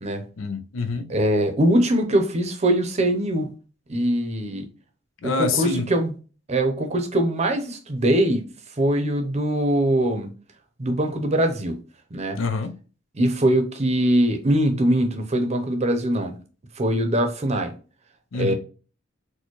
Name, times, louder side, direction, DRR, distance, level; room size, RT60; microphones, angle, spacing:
voice 1, 0.4-1.1 5.2-5.9 12.4-12.8 18.3-18.5, left 4 dB, 90° left, 0.5 m, -26 dB
voice 2, 1.1-3.5 3.9-4.7 5.2-6.1 6.5-8.5 8.8-10.3 10.8-11.7 12.1-12.4 13.2-16.3 16.8-17.7 18.4-18.5, right 1 dB, 35° right, 0.7 m, -22 dB
4.3 x 2.2 x 3.0 m
head